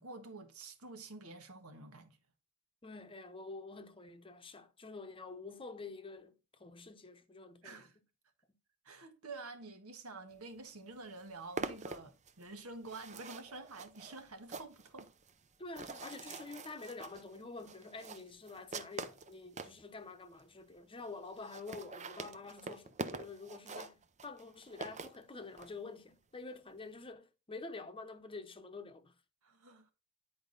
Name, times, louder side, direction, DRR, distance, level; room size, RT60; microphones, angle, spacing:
voice 1, 0.0-2.2 7.6-8.0 8.8-15.1 29.4-29.9, right 3 dB, 80° right, 1.5 m, -49 dB
voice 2, 2.8-7.8 15.6-29.1, left 3 dB, 25° left, 0.9 m, -48 dB
sound 1, 10.6-10.7 10.9-19.8 20.4-20.5 20.7-20.8 21.0-21.1 21.3-25.7, right 4 dB, 35° right, 0.6 m, -45 dB
10.5 x 4.7 x 4.0 m
head